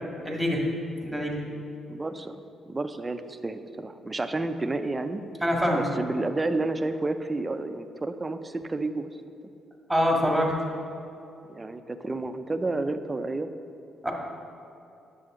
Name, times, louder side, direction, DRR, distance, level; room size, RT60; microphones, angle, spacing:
voice 1, 0.2-0.6 1.0-1.3 5.4-5.8 9.9-10.5 14.0-14.1, equal, ahead, -1 dB, 1.8 m, -24 dB
voice 2, 1.9-5.2 5.7-9.1 11.5-13.5, right 2 dB, 20° right, 9 dB, 0.5 m, -31 dB
9.6 x 7.6 x 3.8 m, 2.7 s
cardioid pair, 90°, 0 cm